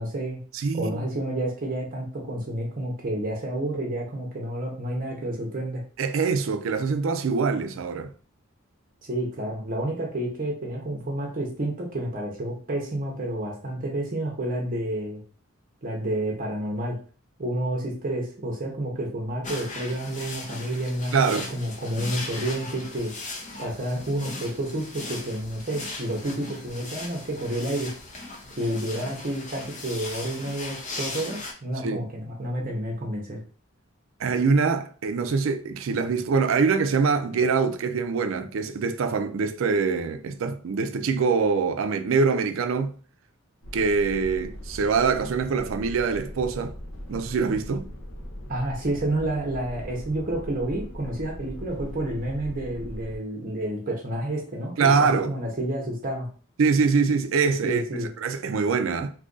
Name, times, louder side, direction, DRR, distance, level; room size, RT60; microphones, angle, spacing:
voice 1, 0.0-0.4 0.7-5.8 9.0-15.2 15.8-17.0 17.4-23.1 23.6-27.9 28.6-33.4 48.5-56.3 57.6-58.1, right 1 dB, 45° right, 0.7 m, -30 dB
voice 2, 0.5-1.1 6.0-8.1 21.1-21.5 31.8-32.1 34.2-42.9 43.7-46.7 47.1-47.9 54.8-55.3 56.6-59.1, right 5 dB, 70° right, 0.4 m, -24 dB
sound 1, 19.4-31.5, left 2 dB, 35° left, 0.7 m, -38 dB
sound 2, 43.6-53.2, equal, 70° left, 0.7 m, -40 dB
2.7 x 2.5 x 3.7 m
head